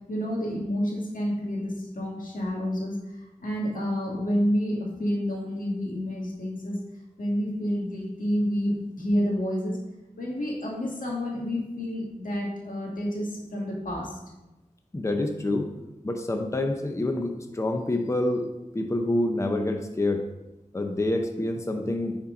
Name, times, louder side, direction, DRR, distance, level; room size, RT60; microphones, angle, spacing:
voice 1, 0.1-3.0 3.4-6.7 7.2-9.8 10.2-14.1, equal, 90° left, -2 dB, 1.9 m, -29 dB
voice 2, 14.9-15.7 16.0-18.5 18.7-20.2 20.7-22.2, left 1 dB, 20° left, 5 dB, 0.6 m, -27 dB
9.7 x 4.4 x 3.8 m, 1.0 s
wide cardioid pair, 85°, 14 cm